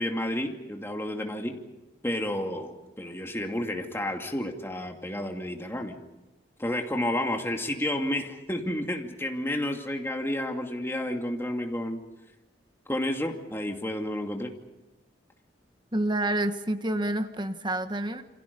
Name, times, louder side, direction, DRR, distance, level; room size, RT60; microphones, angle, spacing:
voice 1, 0.0-1.6 2.0-6.0 6.6-12.0 12.9-14.5, left 1 dB, 15° left, 2 dB, 2.6 m, -31 dB
voice 2, 15.9-18.2, right 1 dB, 25° right, 8 dB, 1.4 m, -28 dB
28.5 x 26.5 x 5.4 m, 1.0 s
head